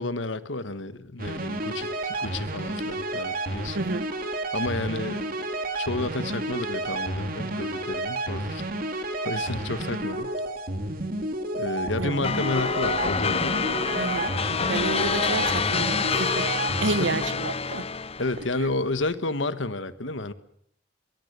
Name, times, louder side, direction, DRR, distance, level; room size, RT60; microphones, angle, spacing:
voice 1, 0.0-3.8 4.5-5.3 5.8-8.6 9.0-10.3 11.5-13.6 16.8-17.1 18.2-20.3, left 2 dB, 85° left, 1.4 m, -31 dB
sound 1, 1.2-17.2, right 2 dB, 50° right, 3.0 m, -31 dB
voice 2, 3.7-4.1 12.0-12.1 14.0-14.4 14.7-16.5 16.8-17.9 18.6-18.7, right 3 dB, 85° right, 1.1 m, -30 dB
sound 2, 12.2-18.5, left 5 dB, 35° left, 0.8 m, -27 dB
23.0 x 21.0 x 6.8 m
head